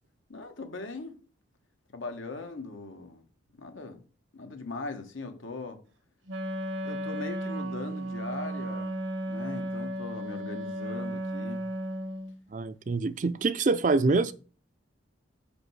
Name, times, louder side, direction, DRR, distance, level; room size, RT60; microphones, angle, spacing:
voice 1, 0.3-1.2 1.9-3.2 3.6-4.0 4.3-5.8 6.8-9.0 9.2-11.6, left 3 dB, 80° left, 1.4 m, -40 dB
Wind instrument woodwind instrument, 6.3-12.4, right 1 dB, 70° right, 0.9 m, -34 dB
voice 2, 12.5-14.3, right 3 dB, 40° right, 0.4 m, -25 dB
5.6 x 5.1 x 6.3 m
head